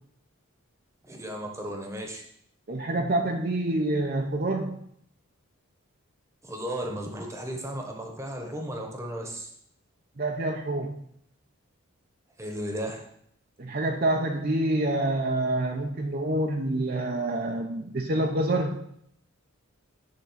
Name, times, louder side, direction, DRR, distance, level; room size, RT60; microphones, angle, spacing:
voice 1, 1.0-2.2 6.4-9.5 12.4-13.0, right 1 dB, 15° right, 2 dB, 1.2 m, -35 dB
voice 2, 2.7-4.8 10.2-11.0 13.6-18.9, right 1 dB, 45° right, 2 dB, 0.7 m, -27 dB
10.5 x 3.8 x 5.7 m, 0.68 s
head